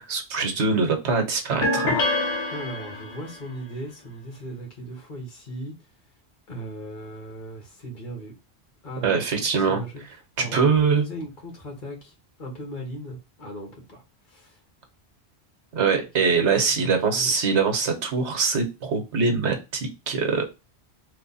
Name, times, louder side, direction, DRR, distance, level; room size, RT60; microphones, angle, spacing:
voice 1, 0.0-2.1 9.0-9.8 10.4-11.0 15.7-20.5, right 5 dB, 90° right, 1.2 m, -23 dB
sound 1, 1.6-3.4, left 2 dB, 75° left, 1.2 m, -26 dB
voice 2, 2.5-5.9 6.5-8.3 8.8-10.0 10.4-14.6 16.1-16.2 16.6-17.4, right 1 dB, 50° left, 1.3 m, -38 dB
3.3 x 2.2 x 3.9 m
omnidirectional pair, 1.1 m